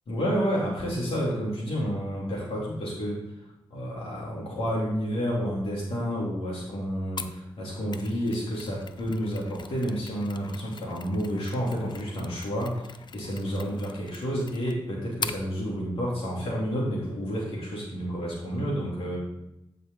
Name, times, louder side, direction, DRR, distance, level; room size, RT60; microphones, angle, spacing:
voice 1, 0.1-3.2 3.7-19.2, equal, 85° left, -4 dB, 2.9 m, -30 dB
Mechanisms, 7.2-15.5, left 5 dB, 55° left, 0.5 m, -42 dB
8.5 x 5.6 x 3.8 m, 0.87 s
cardioid pair, 55°, 9 cm